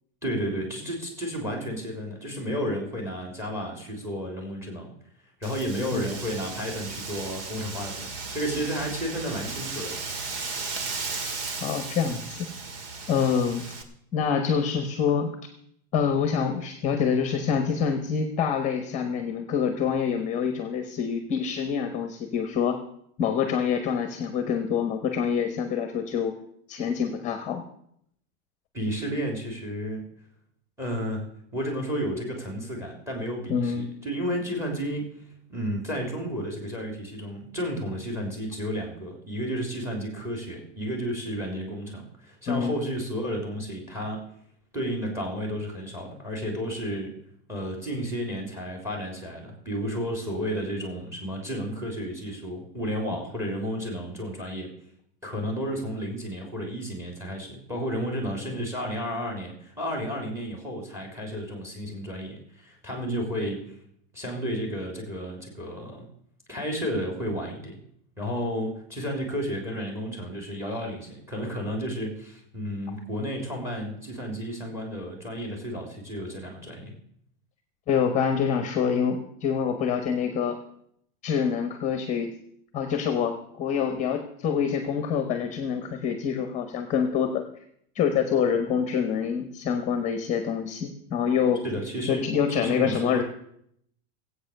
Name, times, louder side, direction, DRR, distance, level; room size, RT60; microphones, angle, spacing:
voice 1, 0.2-4.9 5.4-10.4 28.7-30.1 30.8-31.2 31.5-35.1 35.5-44.2 44.7-47.1 47.5-54.7 55.2-63.7 64.1-66.1 66.5-67.8 68.2-76.9 91.6-92.2 92.6-93.2, equal, 10° right, 2 dB, 3.5 m, -32 dB
Wind, 5.4-13.8, right 4 dB, 60° right, 2.2 m, -35 dB
voice 2, 11.6-12.5 13.1-13.6 14.1-15.3 15.9-22.8 23.2-26.4 26.7-27.6 33.5-33.9 42.5-42.8 77.9-80.6 81.2-82.3 82.7-87.4 87.9-91.6 92.1-93.2, left 7 dB, 20° left, 7 dB, 1.1 m, -26 dB
17.0 x 8.5 x 6.7 m, 0.71 s
supercardioid pair, 160°, 32 cm